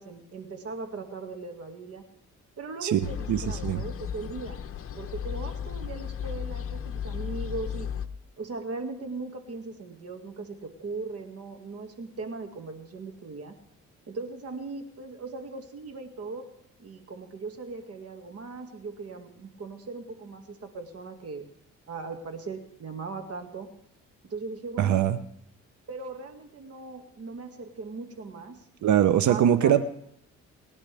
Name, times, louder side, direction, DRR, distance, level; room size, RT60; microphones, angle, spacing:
voice 1, 0.0-2.0 2.6-4.6 5.0-7.9 8.4-13.6 14.1-16.4 16.8-21.4 21.9-23.7 24.3-25.0 25.9-28.6 29.3-29.9, right 3 dB, 50° right, 5 dB, 2.1 m, -39 dB
sound 1, 3.0-8.1, left 8 dB, 45° left, 1.0 m, -35 dB
voice 2, 3.3-3.8 24.8-25.2 28.8-29.9, right 10 dB, 70° right, 12 dB, 0.8 m, -22 dB
25.0 x 10.5 x 3.4 m, 0.74 s
cardioid pair, 90°, 30 cm